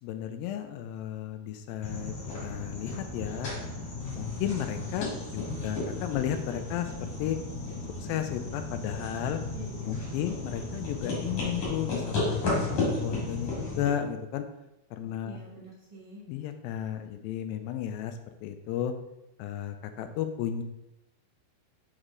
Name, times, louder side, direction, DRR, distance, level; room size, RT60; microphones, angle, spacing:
voice 1, 0.0-2.1 2.4-3.5 4.1-7.4 8.0-9.4 9.8-14.4 14.9-15.4 16.3-18.9 19.4-20.6, left 10 dB, 80° left, 8 dB, 2.2 m, -34 dB
sound 1, 1.8-13.9, left 3 dB, 45° left, 2.7 m, -34 dB
voice 2, 9.5-10.4 15.0-16.2, right 2 dB, 15° right, -9 dB, 1.3 m, -48 dB
5.4 x 4.9 x 3.7 m, 0.90 s
omnidirectional pair, 4.4 m